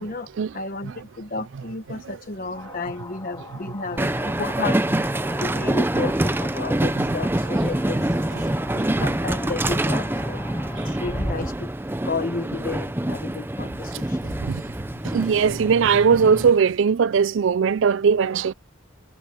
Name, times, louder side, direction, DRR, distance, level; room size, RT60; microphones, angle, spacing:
voice 1, 0.0-4.8 5.3-8.1 8.7-10.4 10.8-11.7 12.0-14.4, left 3 dB, 45° left, 1.0 m, -32 dB
sound 1, 2.5-11.5, left 3 dB, 20° left, 2.0 m, -43 dB
Train, 4.0-16.5, right 1 dB, 10° right, 0.6 m, -25 dB
voice 2, 15.1-18.5, right 6 dB, 75° right, 0.4 m, -19 dB
head